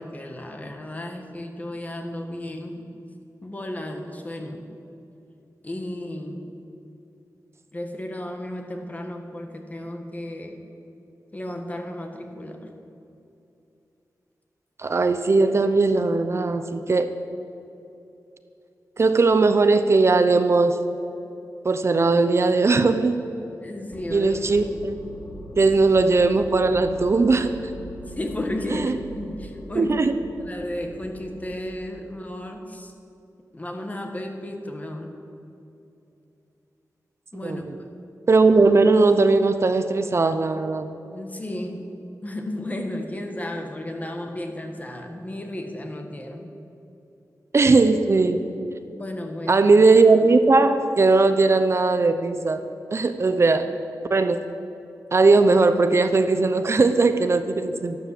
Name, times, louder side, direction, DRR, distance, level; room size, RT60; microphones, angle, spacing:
voice 1, 0.0-2.9 3.4-4.7 5.6-6.4 7.7-10.6 11.3-12.7 23.6-24.4 28.1-29.9 30.4-32.9 33.5-35.1 37.3-37.6 41.1-41.9 42.2-46.5 48.9-49.6, left 1 dB, 25° left, 4 dB, 1.6 m, -33 dB
voice 2, 14.8-17.1 19.0-20.8 21.6-23.2 24.1-24.9 25.6-27.6 28.7-28.9 29.8-30.1 37.4-37.7 38.3-40.9 47.5-48.4 49.5-52.6 52.9-53.6 54.1-54.4 55.1-58.0, right 3 dB, 45° right, 9 dB, 0.7 m, -19 dB
sound 1, 23.9-31.7, left 1 dB, 50° left, 1.5 m, -41 dB
12.5 x 12.0 x 7.7 m, 2.8 s
wide cardioid pair, 125°, 6 cm